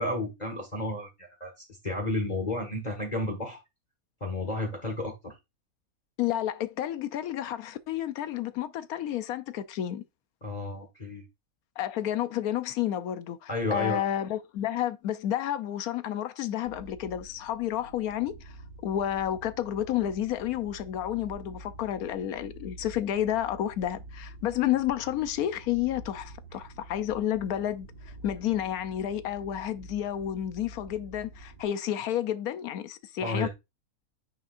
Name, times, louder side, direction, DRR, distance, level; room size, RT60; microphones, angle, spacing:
voice 1, 0.0-3.6 4.2-5.3 10.4-11.2 13.5-14.0 33.2-33.5, left 1 dB, 30° left, 1.6 m, -32 dB
voice 2, 6.2-10.0 11.8-18.5 18.8-27.9 28.2-33.5, left 11 dB, 85° left, 1.1 m, -30 dB
sound 1, 16.6-31.7, right 2 dB, 55° right, 2.0 m, -48 dB
9.3 x 5.1 x 2.5 m
omnidirectional pair, 1.5 m